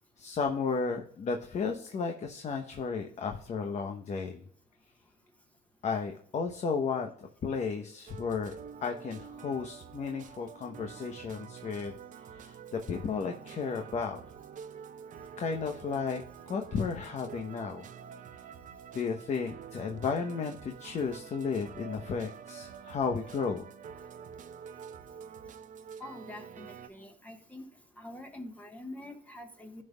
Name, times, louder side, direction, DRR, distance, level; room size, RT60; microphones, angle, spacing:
voice 1, 0.2-4.4 5.8-8.5 8.8-12.0 12.3-14.2 15.4-16.2 16.5-17.9 18.9-23.7, left 5 dB, 45° left, 3 dB, 0.9 m, -33 dB
sound 1, 8.1-26.9, right 7 dB, 50° right, 0.7 m, -47 dB
voice 2, 26.0-27.7 28.0-29.8, left 1 dB, 10° left, 3 dB, 1.3 m, -45 dB
15.5 x 5.5 x 2.3 m, 0.64 s
cardioid pair, 110°, 17 cm